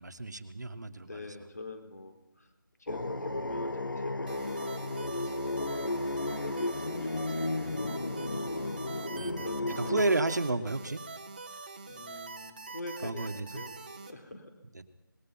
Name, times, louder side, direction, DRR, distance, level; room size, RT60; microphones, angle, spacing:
voice 1, 0.0-1.2 9.2-11.0 13.0-13.6 14.7-14.8, right 2 dB, 55° right, 8 dB, 1.7 m, -32 dB
voice 2, 1.1-2.5 2.8-7.7 9.1-10.0 11.9-13.7 14.1-14.4, left 2 dB, 50° left, 4 dB, 4.1 m, -45 dB
sound 1, 2.9-10.1, left 2 dB, 65° left, 1.7 m, -34 dB
sound 2, 4.3-14.1, right 4 dB, 25° right, 1.3 m, -45 dB
26.0 x 20.0 x 5.7 m, 0.98 s
figure-of-eight pair, 175°, 11 cm